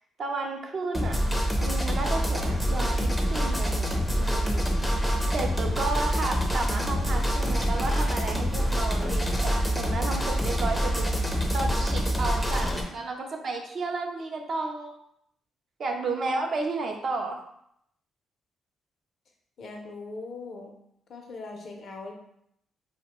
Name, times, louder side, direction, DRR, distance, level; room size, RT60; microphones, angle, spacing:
voice 1, 0.2-1.2 1.6-4.8 5.3-15.0 15.8-17.4, right 3 dB, 50° right, 3 dB, 0.4 m, -32 dB
sound 1, 0.9-12.8, equal, 5° left, 0.5 m, -26 dB
voice 2, 19.6-20.8 21.1-22.1, left 3 dB, 55° left, 2 dB, 0.5 m, -40 dB
2.7 x 2.1 x 2.9 m, 0.74 s
cardioid pair, 90°, 0 cm